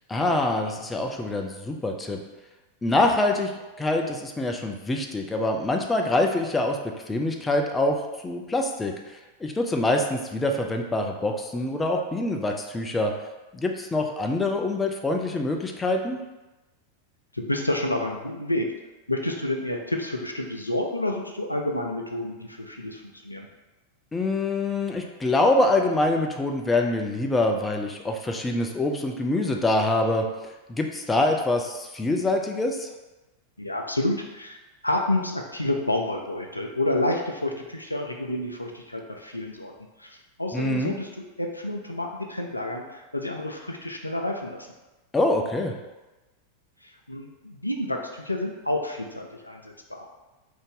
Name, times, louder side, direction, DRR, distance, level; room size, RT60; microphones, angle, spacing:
voice 1, 0.1-2.2 2.8-3.5 3.8-6.8 7.1-8.0 8.2-8.9 9.4-13.1 13.5-16.2 24.1-30.3 30.7-32.9 40.5-40.9 45.1-45.7, left 2 dB, 10° left, 2 dB, 0.3 m, -25 dB
voice 2, 17.3-18.7 19.1-23.5 33.6-39.7 40.0-41.1 41.4-44.7 46.8-50.1, left 1 dB, 85° left, 2 dB, 0.3 m, -29 dB
2.6 x 2.6 x 3.5 m, 1.1 s
figure-of-eight pair, 90°, 0 cm